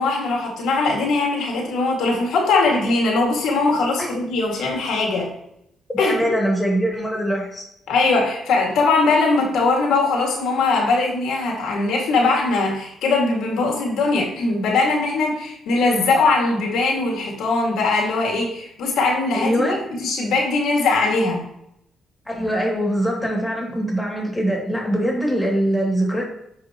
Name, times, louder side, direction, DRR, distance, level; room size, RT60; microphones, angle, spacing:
voice 1, 0.0-5.3 6.0-6.3 7.9-21.5, left 3 dB, 80° left, -1 dB, 2.2 m, -20 dB
voice 2, 5.9-7.7 19.3-19.8 22.3-26.2, equal, 10° left, -1 dB, 2.5 m, -22 dB
11.0 x 4.8 x 3.0 m, 0.78 s
cardioid pair, 90°, 0 cm